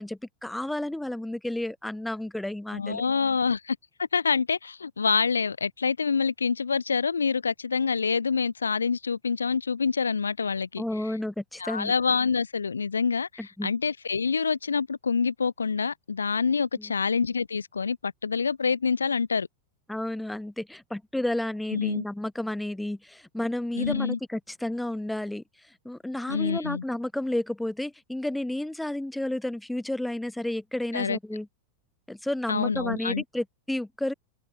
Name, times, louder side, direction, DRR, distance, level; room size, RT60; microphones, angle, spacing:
voice 1, 0.0-3.0 10.8-11.9 13.4-13.7 16.8-16.9 19.9-25.4 25.8-31.5 32.1-34.1, left 1 dB, 5° left, 7.2 m, -31 dB
voice 2, 2.7-10.8 11.6-19.5 21.7-22.0 23.8-24.2 26.3-26.8 30.9-31.2 32.5-33.2, left 5 dB, 75° left, 7.3 m, -26 dB
figure-of-eight pair, 90°, 0 cm